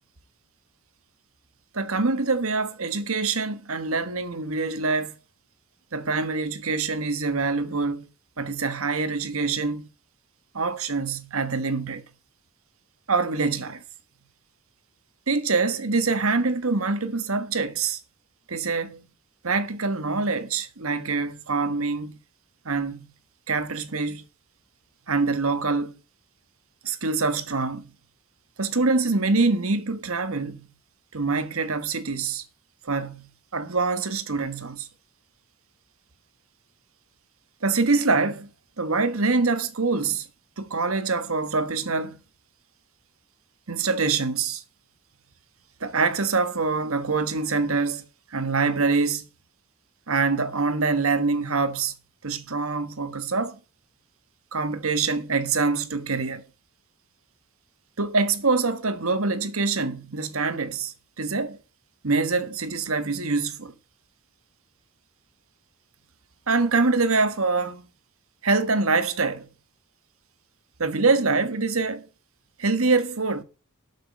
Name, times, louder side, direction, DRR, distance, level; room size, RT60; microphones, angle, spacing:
voice 1, 1.7-5.2 5.9-8.1 8.4-9.9 10.5-12.0 13.1-13.8 15.3-18.0 18.5-19.0 19.4-22.2 22.6-23.1 23.5-24.2 25.1-25.9 26.8-27.9 28.6-30.7 31.1-32.4 32.8-34.9 37.6-38.5 38.8-40.3 40.6-42.2 43.7-44.6 45.8-48.0 48.3-49.3 50.1-51.9 52.2-53.6 54.5-56.4 58.0-61.6 62.0-63.7 66.5-67.9 68.4-69.5 70.8-72.1 72.6-73.4, right 4 dB, 75° right, 1.5 m, -25 dB
12.5 x 6.3 x 5.9 m
head